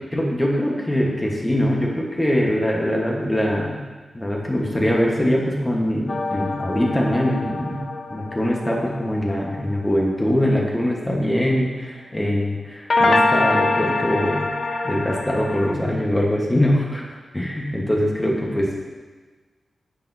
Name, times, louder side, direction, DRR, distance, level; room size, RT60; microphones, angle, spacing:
voice 1, 0.1-3.8 4.1-14.5 14.8-17.0 17.3-18.7, equal, 15° left, -2 dB, 1.2 m, -22 dB
sound 1, 6.1-9.6 12.9-15.7, left 2 dB, 50° left, 0.7 m, -24 dB
10.0 x 6.6 x 2.7 m, 1.3 s
wide cardioid pair, 110°, 0 cm